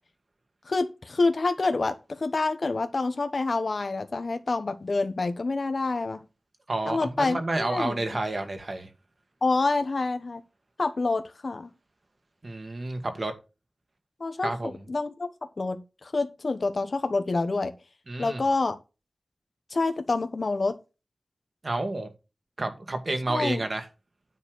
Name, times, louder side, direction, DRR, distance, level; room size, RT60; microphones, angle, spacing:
voice 1, 0.7-6.2 6.9-8.0 9.4-10.4 10.8-11.7 14.2-14.5 14.9-15.3 15.6-17.7 18.2-18.8 19.7-20.7 23.3-23.6, left 3 dB, 65° left, 1.0 m, -27 dB
voice 2, 6.7-8.9 12.4-13.3 14.4-14.7 18.1-18.4 21.6-22.1 22.6-23.9, right 2 dB, 55° right, 2.0 m, -30 dB
9.8 x 4.4 x 6.4 m
wide cardioid pair, 60°, 0 cm